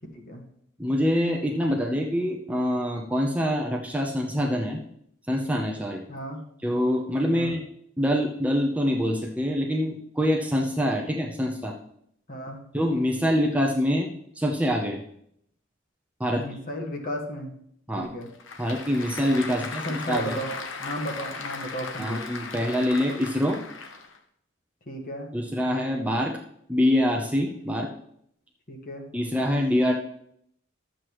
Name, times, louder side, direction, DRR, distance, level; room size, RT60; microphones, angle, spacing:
voice 1, 0.1-0.4 6.1-6.4 7.3-7.6 12.3-12.6 16.4-17.5 18.0-18.3 19.5-22.3 24.9-25.3 28.7-29.1, equal, 45° left, 2 dB, 1.6 m, -34 dB
voice 2, 0.8-4.8 5.3-6.0 6.6-7.6 8.0-11.7 12.7-14.1 14.4-15.0 16.2-16.4 17.9-18.1 18.6-20.4 22.0-23.6 25.3-26.4 26.7-27.9 29.1-29.9, equal, 5° right, 0 dB, 0.8 m, -25 dB
Applause / Crowd, 18.0-24.2, left 4 dB, 75° left, 1.0 m, -37 dB
12.0 x 7.8 x 3.1 m, 0.70 s
head